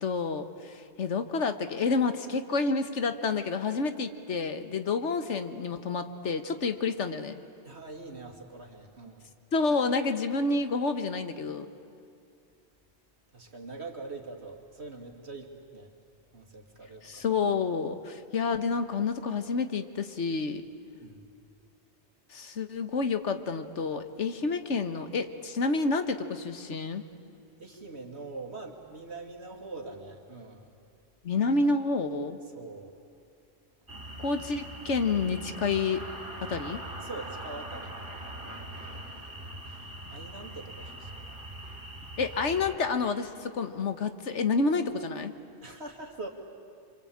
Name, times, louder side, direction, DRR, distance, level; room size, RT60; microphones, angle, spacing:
voice 1, 0.0-7.3 9.5-11.7 17.0-20.6 22.3-27.0 31.2-32.4 34.2-36.0 36.4-36.8 42.2-45.3, left 4 dB, 85° left, 9 dB, 1.6 m, -29 dB
voice 2, 7.6-9.3 13.3-15.9 16.3-17.3 21.0-21.3 27.6-30.7 32.5-33.0 37.0-38.0 40.1-41.4 45.6-46.3, right 3 dB, 65° right, 2 dB, 2.9 m, -43 dB
sound 1, 33.9-42.8, right 1 dB, 50° right, 3.1 m, -41 dB
27.0 x 25.5 x 8.7 m, 2.5 s
omnidirectional pair, 1.2 m